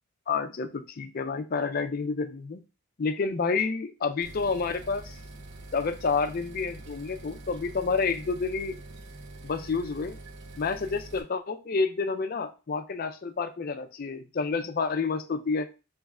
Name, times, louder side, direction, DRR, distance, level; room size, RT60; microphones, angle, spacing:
voice 1, 0.3-2.6 3.0-5.1 5.7-8.8 9.4-10.2 10.6-15.7, left 4 dB, 40° left, 8 dB, 0.4 m, -29 dB
sound 1, 4.2-11.2, right 2 dB, 55° right, 0.6 m, -45 dB
3.4 x 3.1 x 3.6 m, 0.31 s
head